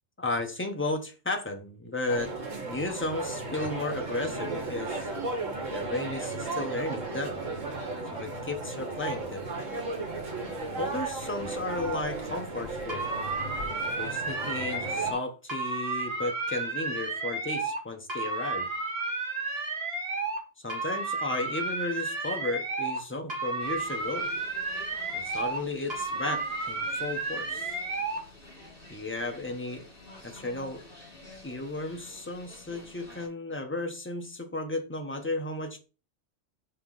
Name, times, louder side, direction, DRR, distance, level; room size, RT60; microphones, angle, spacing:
voice 1, 0.2-2.3 2.6-5.1 5.7-7.4 8.1-9.5 10.8-13.1 14.0-18.7 20.6-24.3 25.1-27.8 28.9-29.9 30.2-30.8 31.4-35.8, left 2 dB, 10° left, 0.9 m, -34 dB
sound 1, 2.1-15.1, right 3 dB, 70° right, 2.0 m, -35 dB
sound 2, 12.9-15.2 15.5-17.8 18.1-20.4 20.7-23.0 23.3-25.6 25.9-28.2, right 3 dB, 50° right, 1.9 m, -32 dB
sound 3, 23.6-33.3, left 2 dB, 45° left, 2.7 m, -50 dB
5.5 x 3.7 x 5.5 m
omnidirectional pair, 1.4 m